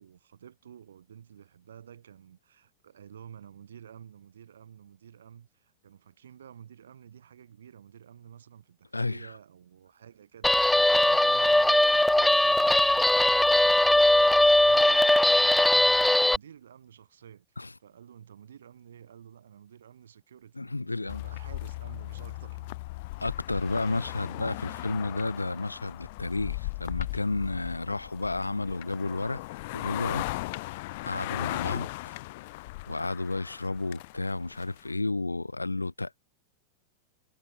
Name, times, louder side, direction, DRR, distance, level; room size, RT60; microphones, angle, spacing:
voice 1, 0.0-14.0 14.3-22.8 24.2-24.3 24.6-25.2 27.9-28.1, right 9 dB, 65° right, 5.0 m, -51 dB
voice 2, 8.9-9.3 10.9-11.0 17.6-17.7 20.6-21.2 23.2-29.4 29.7-30.3 31.0-32.2 32.9-36.2, left 2 dB, 80° left, 1.3 m, -32 dB
Guitar, 10.4-16.4, left 1 dB, 5° left, 0.4 m, -20 dB
sound 1, 21.1-34.9, left 21 dB, 50° left, 1.9 m, -38 dB
figure-of-eight pair, 90°, 0 cm